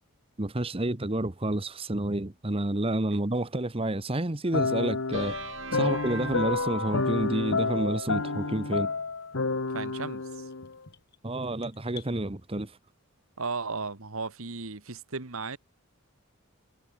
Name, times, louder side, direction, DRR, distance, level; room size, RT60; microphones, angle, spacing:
voice 1, 0.4-5.4 5.7-8.9 11.2-12.7, right 1 dB, 25° right, 1.1 m, -29 dB
sound 1, 4.5-10.9, left 4 dB, 70° left, 1.1 m, -30 dB
sound 2, 5.1-8.9, right 3 dB, 60° right, 3.1 m, -40 dB
voice 2, 9.7-10.5 13.4-15.6, right 4 dB, 75° right, 1.7 m, -36 dB
sound 3, 10.3-12.2, left 10 dB, 50° left, 2.4 m, -51 dB
head